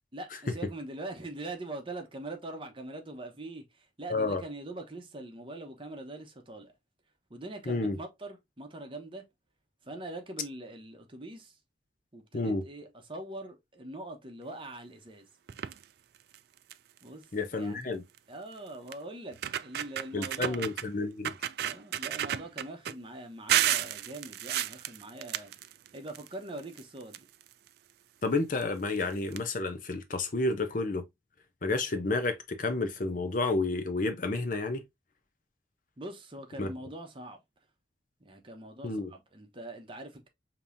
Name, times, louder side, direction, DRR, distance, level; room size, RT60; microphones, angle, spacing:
voice 1, 0.1-6.7 7.3-9.2 9.8-11.5 12.1-15.3 17.0-17.8 18.3-20.7 21.6-25.5 25.9-27.3 36.0-37.4 38.2-40.3, right 2 dB, 30° right, 0.9 m, -43 dB
voice 2, 4.1-4.4 7.7-8.0 12.3-12.6 17.3-18.0 20.1-21.3 28.2-31.0 31.6-34.8 36.6-36.7 38.8-39.1, left 3 dB, 45° left, 0.7 m, -30 dB
sound 1, 15.5-15.8 16.3-16.4 16.7-17.0 18.2-18.3 18.9-19.0 19.3-20.9 21.2-22.9 23.5-26.3 26.6-27.7 28.6-28.7 29.0-29.1 29.3-29.4, right 11 dB, 55° right, 0.3 m, -32 dB
5.3 x 2.9 x 2.6 m
head